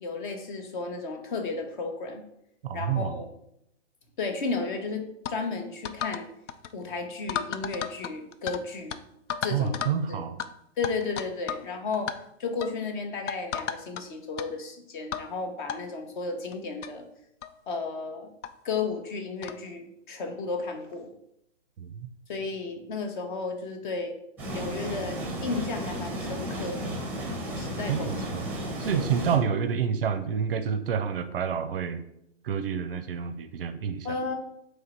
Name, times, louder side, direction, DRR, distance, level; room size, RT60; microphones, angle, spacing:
voice 1, 0.0-2.2 2.7-3.3 4.2-6.3 6.7-9.0 9.4-9.8 10.1-10.2 10.8-12.1 12.4-17.0 17.7-18.3 18.6-21.1 22.3-24.2 24.5-27.0 27.4-28.3 28.6-29.2 34.0-34.3, left 4 dB, 40° left, 5 dB, 0.8 m, -33 dB
voice 2, 2.6-3.2 9.5-10.4 21.8-22.1 27.9-28.5 28.8-32.0 32.4-34.1, right 7 dB, 50° right, 10 dB, 0.5 m, -28 dB
sound 1, 5.2-5.4 5.8-6.2 6.5-6.7 7.3-8.6 8.9-9.0 9.3-10.0 10.4-10.5 10.8-11.7 11.9-12.2 12.6-12.8 13.3-14.0 14.4-14.5 15.1-15.3 15.7-15.8 16.5-16.6 16.8-16.9 17.4-17.6 18.4-18.5 19.4-19.6, left 8 dB, 75° left, 0.5 m, -33 dB
sound 2, 24.4-29.4, equal, 5° right, 0.6 m, -34 dB
3.7 x 3.1 x 4.2 m, 0.77 s
hypercardioid pair, 135°, 36 cm